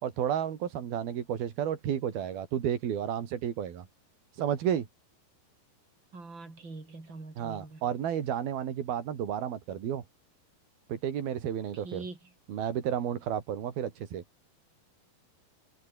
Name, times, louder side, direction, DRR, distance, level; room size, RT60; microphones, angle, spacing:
voice 1, 0.0-3.9 4.3-4.9 7.4-10.0 10.9-12.0 12.5-14.2, right 9 dB, 80° right, 4.4 m, -32 dB
voice 2, 6.1-7.9 11.7-12.3, right 3 dB, 30° right, 6.9 m, -44 dB
omnidirectional pair, 4.2 m